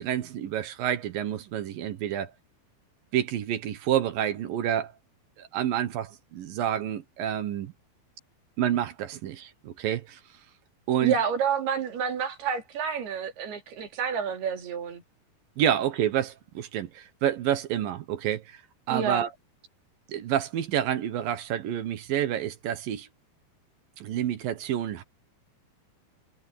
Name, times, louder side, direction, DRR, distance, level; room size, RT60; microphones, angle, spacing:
voice 1, 0.0-2.3 3.1-4.9 5.4-7.7 8.6-10.2 10.9-11.2 15.6-18.6 18.9-19.3 20.1-23.1 24.0-25.0, right 10 dB, 70° right, 2.8 m, -28 dB
voice 2, 11.0-15.0 18.9-19.2, right 7 dB, 85° right, 4.9 m, -29 dB
omnidirectional pair, 4.5 m